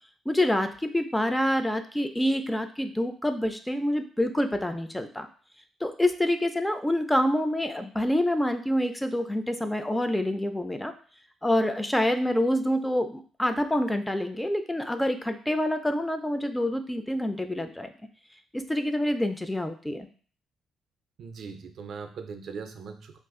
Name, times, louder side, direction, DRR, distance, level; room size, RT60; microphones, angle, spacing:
voice 1, 0.3-5.3 5.8-10.9 11.4-17.9 18.5-20.1, left 1 dB, 10° left, 8 dB, 0.3 m, -27 dB
voice 2, 21.2-23.2, right 5 dB, 65° right, 7 dB, 0.4 m, -40 dB
2.4 x 2.4 x 3.5 m, 0.43 s
cardioid pair, 90°, 0 cm